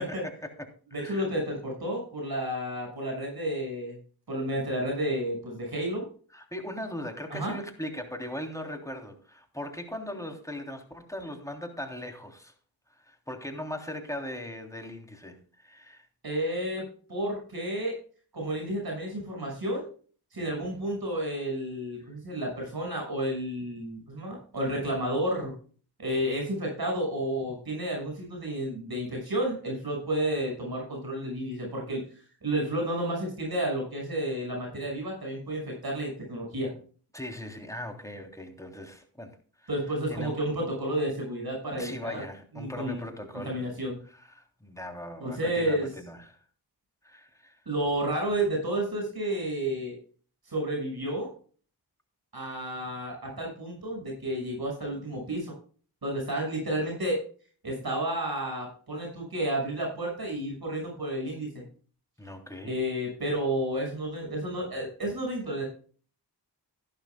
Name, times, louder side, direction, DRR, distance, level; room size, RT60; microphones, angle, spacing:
voice 1, 0.0-1.3 6.3-12.5 12.9-16.1 37.1-39.7 40.1-40.4 41.7-43.7 44.1-46.4 47.0-47.6 62.2-62.8, left 1 dB, 10° left, 3.2 m, -39 dB
voice 2, 0.9-4.0 4.3-6.0 7.3-7.5 16.2-18.0 18.3-19.9 20.3-25.5 26.0-32.0 32.4-36.7 39.7-42.2 42.5-43.0 43.3-44.0 45.2-45.9 47.7-50.0 50.5-51.3 52.3-55.5 56.0-57.3 57.6-61.7 62.6-65.6, right 1 dB, 65° right, 6.2 m, -31 dB
14.5 x 12.0 x 2.3 m
cardioid pair, 50°, 39 cm